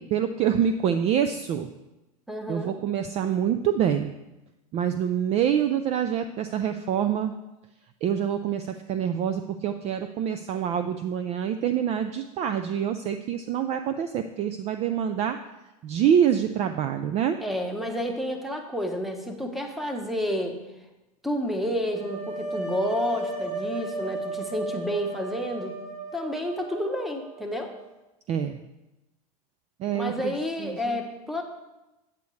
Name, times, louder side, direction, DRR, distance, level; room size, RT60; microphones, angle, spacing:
voice 1, 0.0-1.7 2.5-4.2 4.7-7.3 8.0-15.4 15.8-17.4 28.3-28.6 29.8-30.3 30.6-31.0, right 9 dB, 30° right, 9 dB, 0.4 m, -26 dB
voice 2, 2.3-2.7 17.4-20.6 21.2-25.8 26.1-27.7 29.9-31.4, equal, ahead, 3 dB, 1.0 m, -30 dB
sound 1, 21.9-27.8, right 2 dB, 50° right, 2.9 m, -34 dB
8.2 x 8.2 x 3.2 m, 1.0 s
hypercardioid pair, 115°, 21 cm